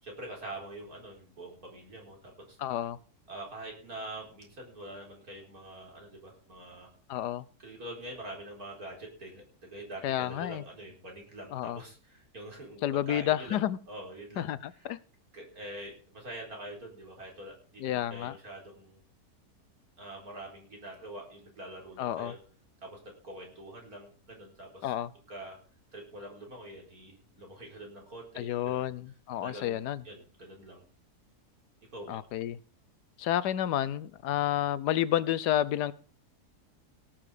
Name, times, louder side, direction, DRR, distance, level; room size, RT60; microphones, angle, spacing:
voice 1, 0.0-2.6 3.3-6.9 7.6-15.0 15.3-19.0 20.0-22.4 22.8-24.9 25.3-25.6 25.9-28.9 29.4-29.8 30.0-30.8 31.9-32.2, right 1 dB, 65° right, 0 dB, 4.8 m, -45 dB
voice 2, 2.6-3.0 7.1-7.4 10.0-10.6 11.5-11.8 12.8-13.8 14.4-15.0 17.8-18.3 22.0-22.3 24.8-25.1 28.4-30.0 32.1-32.6 33.2-35.9, left 12 dB, 85° left, 17 dB, 1.3 m, -30 dB
17.5 x 7.6 x 4.9 m, 0.41 s
omnidirectional pair, 1.7 m